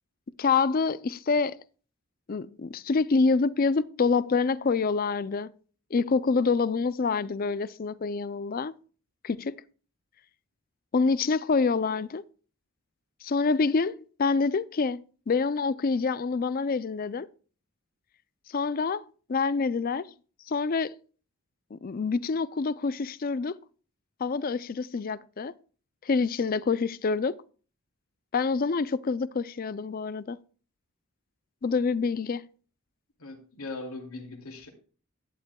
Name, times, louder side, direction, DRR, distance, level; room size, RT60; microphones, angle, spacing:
voice 1, 0.4-1.6 2.3-5.5 5.9-8.7 9.2-9.6 10.9-12.2 13.2-15.0 15.3-17.3 18.5-20.1 20.5-20.9 21.7-23.6 24.2-25.5 26.0-27.3 28.3-30.4 31.6-32.4, left 4 dB, 40° left, 0.4 m, -26 dB
voice 2, 33.2-34.7, left 2 dB, 80° left, 2.5 m, -39 dB
11.5 x 11.0 x 2.3 m
head